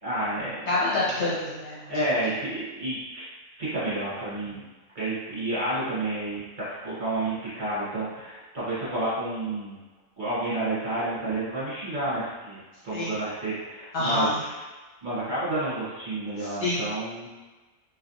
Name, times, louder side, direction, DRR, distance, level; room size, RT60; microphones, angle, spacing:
voice 1, 0.0-0.7 1.9-3.3 3.6-4.6 4.9-6.4 6.8-9.8 10.2-12.6 12.8-14.6 15.0-17.3, right 2 dB, 35° right, -12 dB, 1.4 m, -30 dB
voice 2, 0.7-1.9 12.9-13.1 13.9-14.4 16.4-16.8, left 2 dB, 60° left, -8 dB, 1.1 m, -27 dB
3.2 x 2.5 x 2.6 m, 1.2 s
omnidirectional pair, 1.4 m